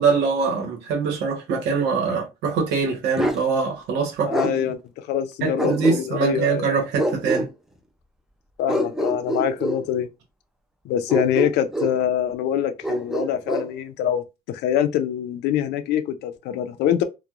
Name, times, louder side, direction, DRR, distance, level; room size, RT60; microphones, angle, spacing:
voice 1, 0.0-4.6 5.4-7.5, right 5 dB, 90° right, 1.0 m, -23 dB
Bark, 3.2-3.4 4.3-4.5 5.6-6.3 7.0-7.5 8.7-9.8 11.1-12.0 12.8-13.7, right 1 dB, 5° right, 0.4 m, -25 dB
voice 2, 4.2-6.7 8.6-10.1 10.8-17.0, left 9 dB, 80° left, 0.5 m, -24 dB
2.9 x 2.2 x 2.4 m
cardioid pair, 110°, 17 cm